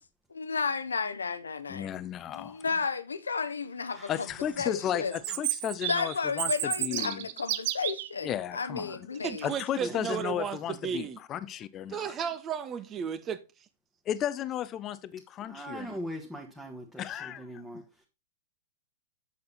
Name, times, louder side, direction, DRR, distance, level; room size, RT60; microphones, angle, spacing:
voice 1, 0.3-1.9 2.3-4.3 4.6-5.1 5.9-9.5, left 5 dB, 80° left, 0.9 m, -32 dB
voice 2, 1.7-2.6 4.1-7.3 8.2-9.1 9.4-12.1 14.1-16.0 17.0-17.4, left 10 dB, 30° left, 0.7 m, -34 dB
voice 3, 3.9-4.4 9.8-10.4 15.4-18.0, equal, 5° right, 1.5 m, -42 dB
Chirp tweet, 5.1-8.1, right 14 dB, 50° right, 0.7 m, -32 dB
voice 4, 9.2-11.2 11.9-13.4, right 7 dB, 25° right, 1.0 m, -34 dB
7.9 x 6.9 x 4.1 m
figure-of-eight pair, 110°, 0 cm